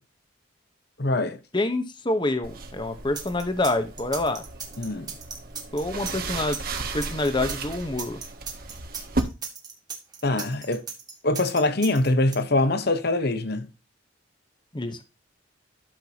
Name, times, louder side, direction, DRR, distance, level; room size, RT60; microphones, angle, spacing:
voice 1, 1.0-1.4 4.8-5.1 10.2-10.9 11.2-13.7, left 2 dB, 55° left, 1.1 m, -24 dB
voice 2, 1.5-4.4 5.7-6.6 6.9-8.2 14.7-15.0, left 2 dB, 25° left, 0.9 m, -27 dB
sound 1, 2.4-9.2, right 3 dB, 50° right, 1.4 m, -35 dB
sound 2, 3.1-12.4, right 6 dB, 20° right, 1.6 m, -37 dB
12.0 x 6.7 x 2.9 m
head